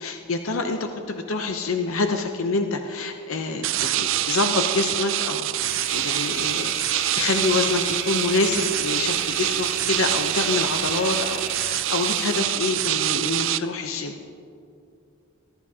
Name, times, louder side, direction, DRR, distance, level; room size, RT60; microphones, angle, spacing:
voice 1, 0.0-5.5 5.9-14.1, left 3 dB, 75° left, 5 dB, 0.7 m, -26 dB
sound 1, 3.6-13.6, right 13 dB, 65° right, 0.4 m, -25 dB
sound 2, 5.6-12.4, equal, 25° left, 3.3 m, -37 dB
19.0 x 11.5 x 2.8 m, 2.5 s
head